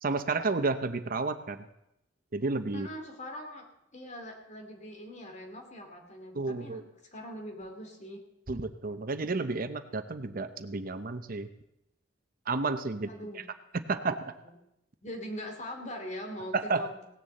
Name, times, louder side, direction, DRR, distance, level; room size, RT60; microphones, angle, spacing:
voice 1, 0.0-1.6 2.3-2.9 6.3-6.8 8.5-11.5 12.5-13.4 13.7-14.4 16.5-16.9, right 3 dB, 50° right, 10 dB, 0.8 m, -31 dB
voice 2, 2.7-3.6 3.9-6.8 7.1-8.2 12.9-13.4 14.0-14.1 14.4-14.5 15.0-17.0, equal, 40° left, 3 dB, 2.4 m, -42 dB
17.5 x 6.9 x 7.7 m, 0.84 s
head